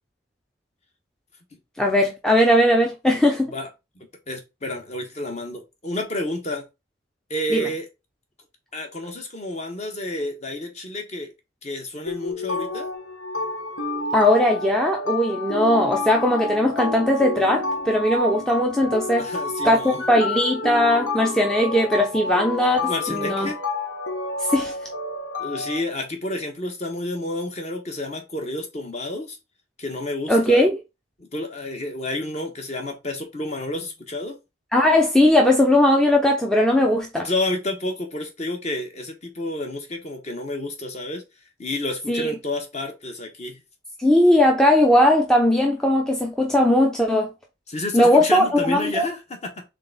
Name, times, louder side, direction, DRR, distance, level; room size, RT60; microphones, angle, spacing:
voice 1, 1.8-3.5 7.5-7.7 14.1-19.3 19.6-23.5 24.5-24.7 30.3-30.7 34.7-37.2 42.1-42.3 44.0-47.3 47.9-49.1, left 1 dB, 5° left, 0.5 m, -19 dB
voice 2, 4.0-6.6 7.3-7.9 8.7-11.3 11.6-12.9 19.2-20.0 22.8-23.6 25.4-29.4 29.8-30.6 31.2-34.4 37.2-41.2 41.6-43.6 47.7-49.6, left 2 dB, 35° left, 1.0 m, -30 dB
sound 1, 12.1-25.8, left 2 dB, 70° left, 1.0 m, -29 dB
3.7 x 3.4 x 3.8 m
head